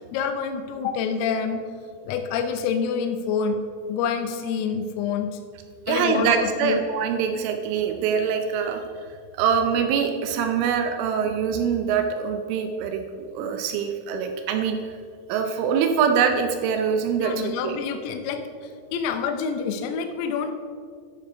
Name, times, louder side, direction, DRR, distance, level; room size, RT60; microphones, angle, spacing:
voice 1, 0.1-1.6 2.0-3.6 3.9-5.4 5.9-6.8 17.2-20.5, left 6 dB, 85° left, 7 dB, 3.4 m, -27 dB
voice 2, 5.9-8.8 9.4-14.8 15.3-17.8, right 7 dB, 80° right, 5 dB, 3.0 m, -24 dB
11.5 x 6.9 x 5.1 m, 2.1 s
omnidirectional pair, 5.9 m